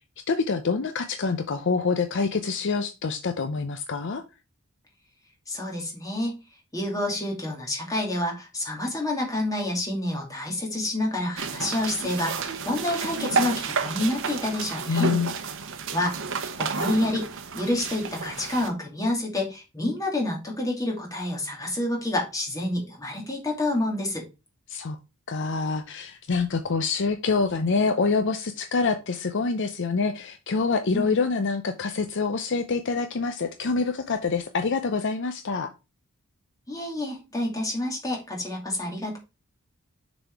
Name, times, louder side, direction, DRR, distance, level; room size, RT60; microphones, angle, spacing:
voice 1, 0.3-4.2 14.9-15.3 24.7-25.0 25.3-35.7, left 4 dB, 55° left, 7 dB, 0.6 m, -26 dB
voice 2, 5.5-6.4 6.7-15.1 15.9-16.2 16.6-17.3 17.5-24.3 30.9-31.1 36.7-39.2, left 1 dB, 15° left, -1 dB, 2.5 m, -28 dB
sound 1, 11.4-18.7, right 5 dB, 60° right, 0.8 m, -31 dB
6.6 x 4.2 x 4.6 m, 0.27 s
head